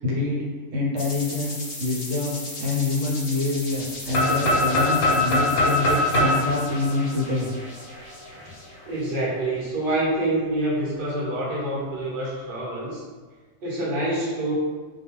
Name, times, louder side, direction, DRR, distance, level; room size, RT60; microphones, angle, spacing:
voice 1, 0.0-7.5, left 3 dB, 70° right, -4 dB, 0.9 m, -26 dB
sound 1, 1.0-9.5, left 2 dB, 60° left, 0.5 m, -38 dB
sound 2, 4.1-8.0, left 1 dB, 90° left, 1.0 m, -22 dB
voice 2, 8.9-13.0 13.6-14.5, right 1 dB, 45° right, -7 dB, 0.9 m, -26 dB
2.3 x 2.2 x 3.0 m, 1.5 s
omnidirectional pair, 1.4 m